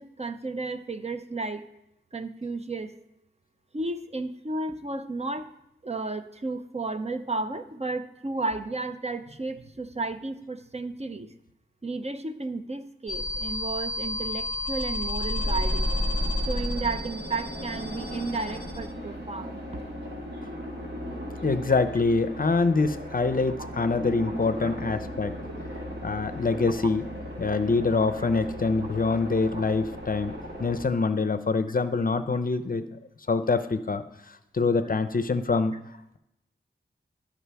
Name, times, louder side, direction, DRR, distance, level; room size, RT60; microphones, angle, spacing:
voice 1, 0.0-1.6 2.1-2.9 3.7-5.5 5.8-11.3 11.8-15.9 16.5-19.6 23.6-23.7 24.6-24.7 27.9-28.3 29.5-29.6, right 3 dB, 35° right, 9 dB, 0.5 m, -33 dB
sound 1, 13.1-18.9, left 1 dB, 25° left, 1.0 m, -30 dB
sound 2, 15.3-30.9, equal, 55° right, 1.7 m, -38 dB
voice 2, 21.4-25.3 26.0-27.1 27.4-30.3 30.6-32.8 33.3-34.0 34.5-35.7, left 4 dB, 45° left, 11 dB, 0.5 m, -25 dB
12.5 x 4.9 x 3.4 m, 0.88 s
wide cardioid pair, 70°, 20 cm